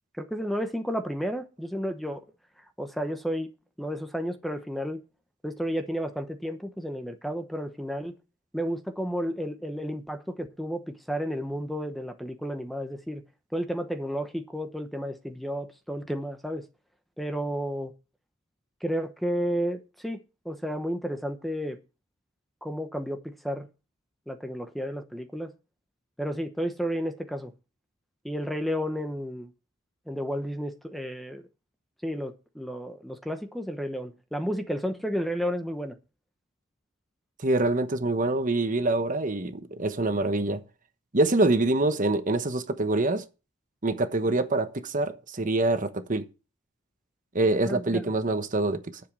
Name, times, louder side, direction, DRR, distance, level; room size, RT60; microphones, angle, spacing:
voice 1, 0.2-2.2 2.8-3.5 3.8-5.0 5.4-8.1 8.5-13.2 13.5-16.6 17.2-17.9 18.8-20.2 20.4-21.8 22.6-23.7 24.3-25.5 26.2-27.5 28.2-29.5 30.1-31.4 32.0-36.0 47.6-48.0, equal, ahead, 0.9 m, -32 dB
voice 2, 37.4-40.6 41.1-43.2 43.8-46.2 47.3-49.0, right 2 dB, 40° right, 1.1 m, -25 dB
10.5 x 7.4 x 6.2 m
head